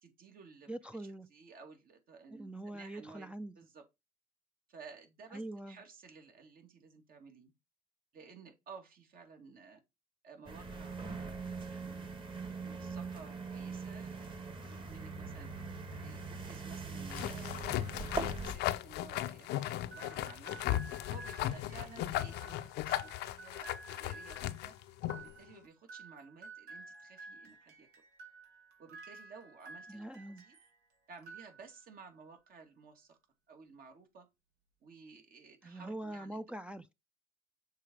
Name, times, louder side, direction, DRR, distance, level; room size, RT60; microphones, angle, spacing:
voice 1, 0.0-3.3 3.6-3.8 4.7-7.5 8.1-9.8 10.2-12.1 12.4-15.5 16.0-20.6 21.1-24.7 25.2-27.9 28.8-30.6 31.1-33.2 33.5-34.3 34.8-36.4, right 5 dB, 60° right, 2.4 m, -55 dB
voice 2, 0.7-1.3 2.4-3.5 5.3-5.8 29.9-30.5 35.6-36.9, right 1 dB, 5° right, 0.4 m, -43 dB
sound 1, 10.5-18.5, right 4 dB, 30° right, 1.6 m, -42 dB
sound 2, 17.1-25.3, left 14 dB, 85° left, 0.6 m, -37 dB
sound 3, 19.9-30.8 31.1-32.0, right 3 dB, 80° right, 2.6 m, -53 dB
6.6 x 4.1 x 4.7 m
cardioid pair, 110°, 17 cm